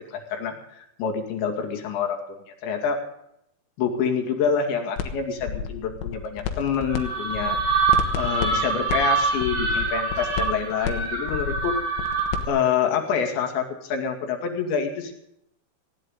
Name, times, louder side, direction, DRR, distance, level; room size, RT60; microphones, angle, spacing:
voice 1, 0.1-2.4 2.6-3.0 3.8-7.6 8.2-11.7 12.5-15.1, left 7 dB, 70° left, 3 dB, 4.4 m, -26 dB
sound 1, 5.0-5.1 5.4-7.0 7.3-12.5, left 7 dB, 85° left, 3.9 m, -31 dB
sound 2, 6.9-12.6, right 5 dB, 30° right, 7.6 m, -25 dB
19.0 x 17.5 x 3.9 m, 0.76 s
omnidirectional pair, 5.6 m